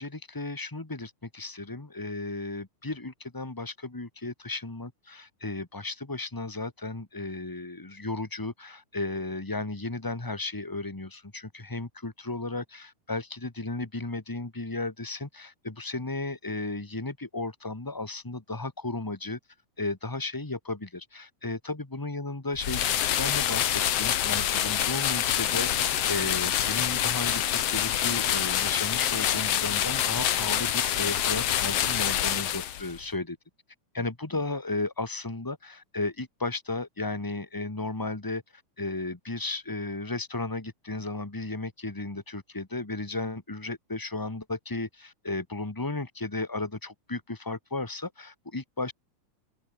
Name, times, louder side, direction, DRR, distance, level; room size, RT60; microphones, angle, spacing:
voice 1, 0.0-19.4 19.8-22.8 23.2-33.4 33.9-38.4 38.8-48.9, left 2 dB, 20° left, 0.6 m, -34 dB
sound 1, 22.6-33.0, left 10 dB, 60° left, 2.3 m, -26 dB
omnidirectional pair, 3.4 m